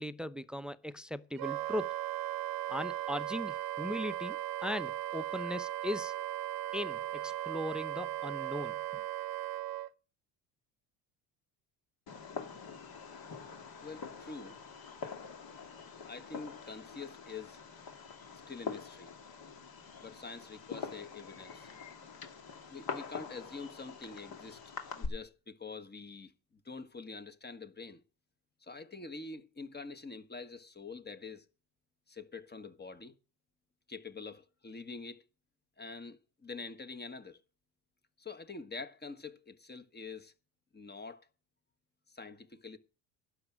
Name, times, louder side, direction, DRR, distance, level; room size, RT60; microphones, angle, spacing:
voice 1, 0.0-2.0 2.7-6.2 6.7-9.0, left 1 dB, ahead, 0.7 m, -38 dB
Wind instrument woodwind instrument, 1.4-9.9, right 13 dB, 45° right, 0.8 m, -37 dB
Fireworks, 12.1-25.1, left 5 dB, 50° left, 2.8 m, -45 dB
voice 2, 13.8-14.6 16.0-17.6 18.5-19.1 20.0-21.7 22.5-24.6 25.0-26.3 26.6-28.0 28.6-31.5 32.1-33.1 33.9-35.2 35.8-37.4 38.2-40.3 40.7-41.3 42.1-42.8, left 4 dB, 20° left, 1.6 m, -46 dB
11.5 x 6.3 x 9.2 m
hypercardioid pair, 65°, 48 cm